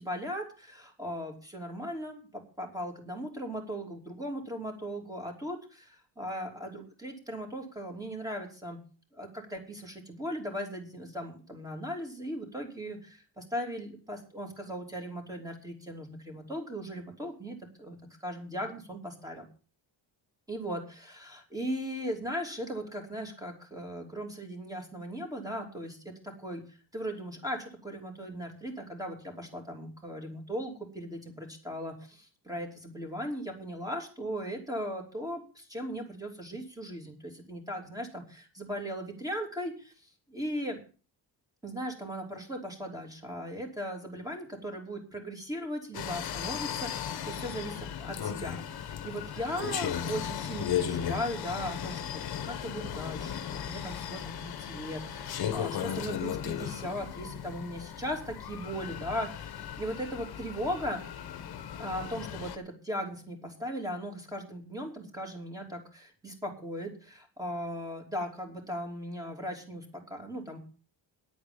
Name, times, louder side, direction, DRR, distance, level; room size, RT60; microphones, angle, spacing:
voice 1, 0.0-8.8 9.1-19.5 20.5-40.8 41.6-61.0 61.8-70.6, equal, 10° right, 3 dB, 3.0 m, -38 dB
sound 1, 45.9-62.6, left 9 dB, 55° left, 1.1 m, -36 dB
10.5 x 8.7 x 6.9 m, 0.37 s
wide cardioid pair, 170°, 45 cm